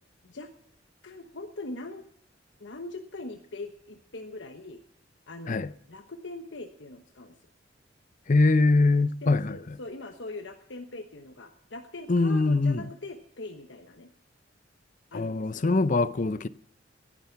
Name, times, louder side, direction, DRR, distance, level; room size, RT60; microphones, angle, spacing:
voice 1, 1.0-2.0 2.6-4.8 5.3-5.6 5.9-7.3 9.2-14.1 15.1-15.7, left 2 dB, 75° left, 1.2 m, -41 dB
voice 2, 8.3-9.8 12.1-12.9 15.1-16.5, left 3 dB, 45° left, 0.6 m, -23 dB
16.5 x 10.5 x 5.8 m
head